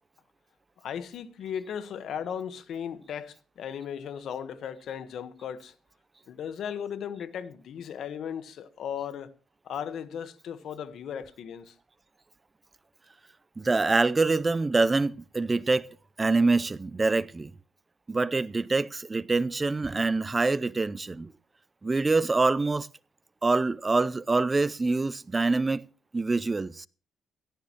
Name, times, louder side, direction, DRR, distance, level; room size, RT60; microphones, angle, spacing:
voice 1, 0.8-5.7 6.3-9.3 9.6-11.8, left 8 dB, 70° left, 1.3 m, -36 dB
voice 2, 13.6-15.9 16.2-17.5 18.1-21.3 21.8-22.9 23.4-25.9 26.1-26.9, right 3 dB, 25° right, 0.6 m, -25 dB
17.0 x 14.0 x 3.0 m
cardioid pair, 90°, 0 cm